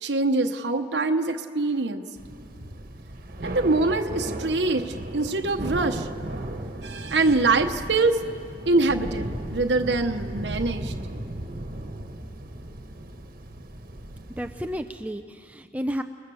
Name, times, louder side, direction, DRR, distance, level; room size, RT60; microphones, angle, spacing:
voice 1, 0.0-2.0 3.4-6.1 6.8-8.2 8.7-10.9, right 3 dB, 70° right, 5 dB, 1.0 m, -24 dB
Thunder / Rain, 2.2-15.1, right 1 dB, 50° right, 1.4 m, -36 dB
voice 2, 14.4-16.0, equal, 10° right, 6 dB, 0.5 m, -32 dB
30.0 x 20.0 x 7.0 m, 2.4 s
head